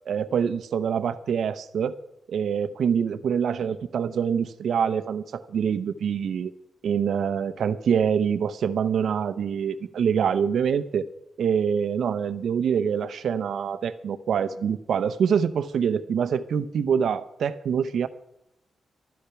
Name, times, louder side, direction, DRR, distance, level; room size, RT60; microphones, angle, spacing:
voice 1, 0.1-1.9 2.3-6.5 6.8-11.1 11.4-18.1, right 7 dB, 80° right, 13 dB, 0.7 m, -25 dB
13.0 x 10.0 x 5.8 m, 0.81 s
wide cardioid pair, 135°, 0 cm